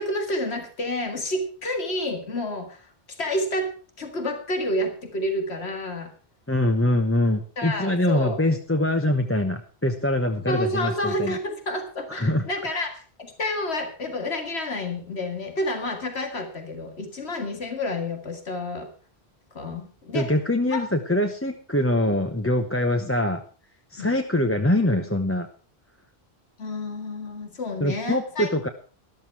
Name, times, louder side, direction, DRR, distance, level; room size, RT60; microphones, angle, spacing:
voice 1, 0.0-2.8 3.2-6.1 7.6-8.4 10.5-18.9 19.5-20.3 20.7-21.1 24.0-24.1 26.6-28.5, left 1 dB, 90° left, 5 dB, 2.3 m, -29 dB
voice 2, 6.5-11.4 12.2-12.5 20.1-23.4 23.9-25.5 27.8-28.7, left 1 dB, 15° left, 4 dB, 0.8 m, -23 dB
13.5 x 12.5 x 4.7 m, 0.37 s
omnidirectional pair, 1.1 m